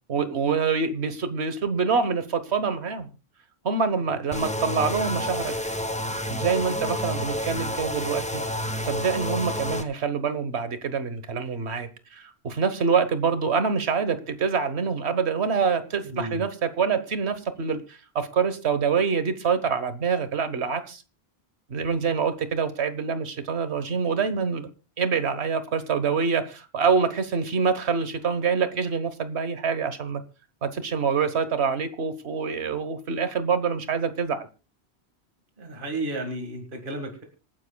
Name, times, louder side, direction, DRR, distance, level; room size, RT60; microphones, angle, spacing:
voice 1, 0.1-3.1 3.6-5.5 6.3-8.4 8.8-21.0 21.7-24.7 25.0-30.2 30.6-34.5, right 5 dB, 80° right, 11 dB, 1.5 m, -26 dB
sound 1, 4.3-9.8, equal, 5° left, 0.9 m, -30 dB
voice 2, 16.0-16.4 35.6-37.2, right 1 dB, 50° right, 3 dB, 2.1 m, -33 dB
26.0 x 9.7 x 2.3 m, 0.32 s
omnidirectional pair, 1.1 m